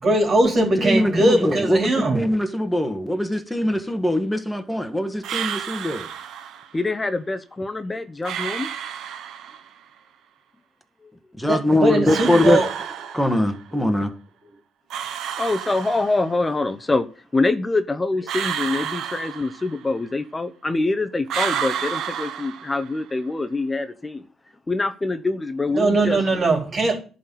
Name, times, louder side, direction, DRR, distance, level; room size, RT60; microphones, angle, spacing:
voice 1, 0.0-2.3 11.4-12.7 25.7-27.0, right 2 dB, 45° right, 3.8 m, -20 dB
voice 2, 0.6-6.1 11.4-12.6 13.1-14.1, left 1 dB, ahead, 1.6 m, -22 dB
sound 1, 5.2-6.7 8.2-9.7 12.1-13.6 14.9-16.5 18.3-20.0 21.3-23.1, right 9 dB, 80° right, 0.9 m, -30 dB
voice 3, 6.7-8.7 15.4-17.1 17.3-24.2 24.7-26.2, left 3 dB, 20° left, 0.8 m, -25 dB
11.0 x 4.2 x 7.9 m
cardioid pair, 90°, 0 cm